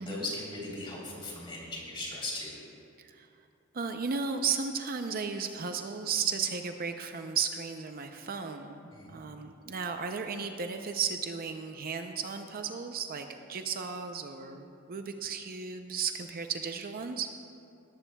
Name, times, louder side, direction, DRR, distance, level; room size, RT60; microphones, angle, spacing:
voice 1, 0.0-2.5 8.9-9.2, left 2 dB, 25° left, -4 dB, 3.3 m, -38 dB
voice 2, 3.7-17.3, right 6 dB, 45° right, 6 dB, 0.5 m, -34 dB
18.0 x 14.5 x 2.3 m, 2.6 s
head